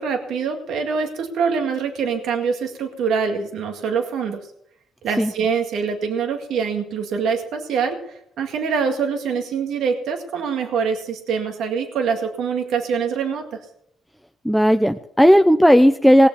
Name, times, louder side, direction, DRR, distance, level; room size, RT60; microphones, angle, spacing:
voice 1, 0.0-4.4 5.0-13.4, right 6 dB, 80° right, 4 dB, 2.0 m, -24 dB
voice 2, 14.4-16.3, equal, ahead, 8 dB, 0.6 m, -14 dB
19.0 x 6.9 x 7.0 m, 0.75 s
cardioid pair, 90°, 0 cm